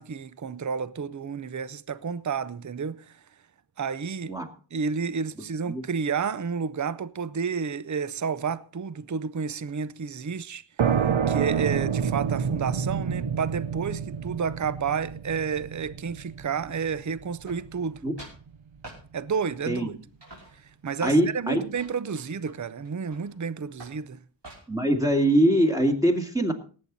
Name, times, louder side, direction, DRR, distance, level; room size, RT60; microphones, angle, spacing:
voice 1, 0.0-3.2 3.8-4.4 4.7-11.0 11.3-18.0 19.1-19.9 20.8-24.2, right 6 dB, 40° right, 0.6 m, -31 dB
voice 2, 5.4-5.8 18.0-18.1 19.7-20.0 21.0-21.6 24.7-26.5, right 1 dB, 5° right, 2.2 m, -23 dB
sound 1, 10.8-18.2, right 7 dB, 90° right, 0.9 m, -28 dB
sound 2, 17.5-17.9 18.2-18.4 18.8-19.0 19.6-19.9 20.2-21.3 21.7-23.4 23.8-24.0 24.4-24.9, right 2 dB, 65° right, 5.9 m, -46 dB
18.5 x 8.7 x 4.0 m
wide cardioid pair, 50°, 46 cm